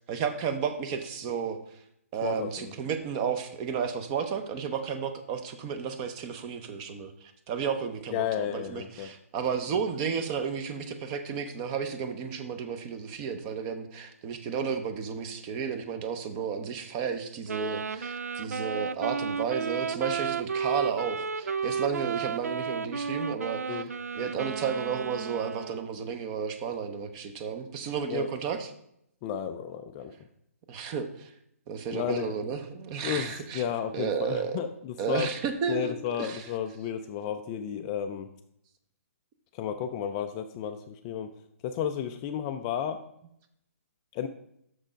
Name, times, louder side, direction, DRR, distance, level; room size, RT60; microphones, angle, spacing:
voice 1, 0.1-1.8 2.1-23.9 24.1-28.7 30.7-31.3 31.7-33.6 33.9-34.6 35.0-36.5, right 6 dB, 25° right, 9 dB, 0.7 m, -32 dB
voice 2, 2.2-2.7 8.1-9.1 23.7-23.9 28.1-28.3 29.2-30.1 31.9-32.4 33.0-35.3 35.7-38.3 39.5-41.3 41.6-43.0 44.1-44.3, left 9 dB, 20° left, 7 dB, 0.3 m, -32 dB
Wind instrument woodwind instrument, 17.5-26.0, right 5 dB, 85° right, 0.4 m, -33 dB
6.5 x 6.2 x 5.0 m, 0.75 s
hypercardioid pair, 155°, 8 cm